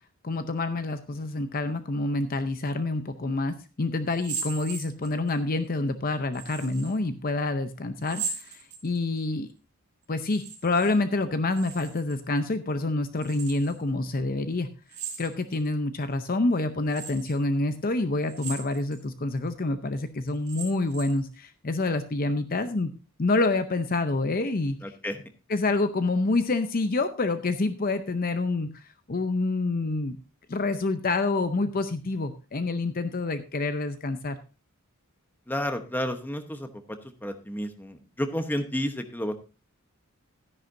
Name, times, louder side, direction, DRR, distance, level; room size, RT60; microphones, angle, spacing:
voice 1, 0.2-9.5 10.1-14.7 15.2-22.9 23.2-24.8 25.5-30.2 30.5-34.4, left 2 dB, 40° left, 10 dB, 0.6 m, -27 dB
sound 1, 4.1-5.3 6.3-6.9 8.0-9.2 10.2-10.9 11.2-12.2 13.2-13.8 14.9-15.7 16.2-16.3 16.9-17.4 18.2-19.0 19.5-19.6 20.3-21.3, right 5 dB, 35° right, 4.4 m, -38 dB
voice 2, 24.8-25.2 35.5-39.3, equal, 10° left, 7 dB, 1.0 m, -31 dB
13.5 x 10.0 x 2.6 m, 0.32 s
head